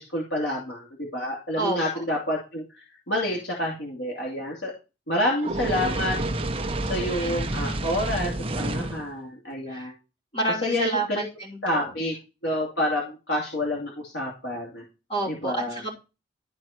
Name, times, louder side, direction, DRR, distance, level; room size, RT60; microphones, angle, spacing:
voice 1, 0.0-4.7 5.1-6.2 6.9-9.9 10.6-11.3 11.6-12.1 12.4-14.8 15.3-15.8, left 1 dB, 80° left, -2 dB, 2.5 m, -28 dB
Fire, 5.4-9.1, right 2 dB, 30° right, 0.8 m, -29 dB
voice 2, 7.2-8.0 9.7-9.9 10.3-11.9 15.1-16.0, right 2 dB, 30° left, 0 dB, 3.1 m, -30 dB
12.5 x 4.4 x 4.4 m, 0.29 s
head